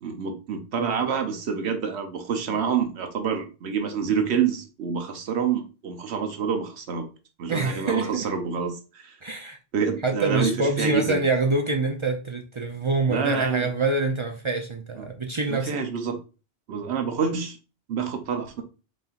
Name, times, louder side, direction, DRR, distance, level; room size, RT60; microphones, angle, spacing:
voice 1, 0.0-7.1 7.4-9.2 9.7-11.2 13.1-13.7 15.0-15.1 15.5-16.2 16.7-17.6 17.9-18.6, right 6 dB, 85° right, 5 dB, 1.0 m, -27 dB
voice 2, 7.5-8.3 9.2-9.6 10.0-15.7, right 3 dB, 40° right, 3 dB, 0.4 m, -25 dB
4.3 x 4.1 x 2.4 m, 0.33 s
omnidirectional pair, 1.1 m